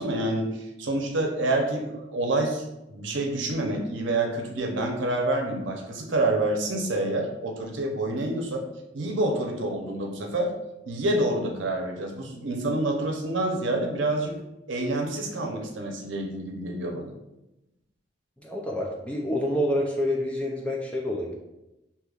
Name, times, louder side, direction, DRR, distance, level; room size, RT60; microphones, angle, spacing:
voice 1, 0.0-8.6 8.9-10.5 10.9-14.3 14.7-17.1, right 2 dB, 80° right, 2 dB, 0.7 m, -27 dB
voice 2, 18.4-21.3, left 1 dB, 5° left, -1 dB, 0.4 m, -28 dB
6.5 x 2.8 x 2.4 m, 0.95 s
head